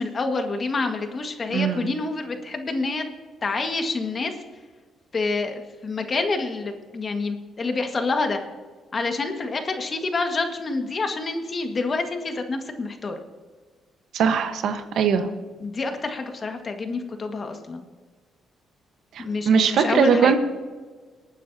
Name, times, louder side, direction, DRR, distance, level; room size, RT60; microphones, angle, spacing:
voice 1, 0.0-3.0 3.4-4.3 5.1-8.4 8.9-13.2 15.6-17.8 19.2-20.3, left 3 dB, 35° left, 5 dB, 1.7 m, -27 dB
voice 2, 1.5-1.9 14.1-15.3 19.1-20.4, right 6 dB, 70° right, 8 dB, 1.2 m, -21 dB
25.0 x 9.3 x 2.8 m, 1.5 s
cardioid pair, 90°, 0 cm